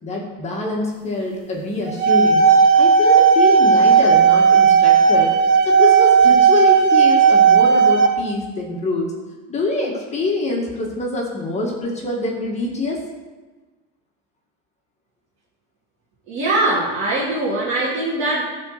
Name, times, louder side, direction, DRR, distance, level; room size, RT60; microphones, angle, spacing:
voice 1, 0.0-2.5 2.8-5.3 5.7-9.1 9.5-13.0, left 2 dB, 20° left, -1 dB, 1.9 m, -25 dB
sound 1, 1.8-8.1, right 6 dB, 70° right, 1.9 m, -13 dB
voice 2, 16.3-18.4, right 2 dB, 45° right, -7 dB, 2.7 m, -21 dB
13.0 x 4.5 x 6.6 m, 1.3 s
cardioid pair, 150°, 29 cm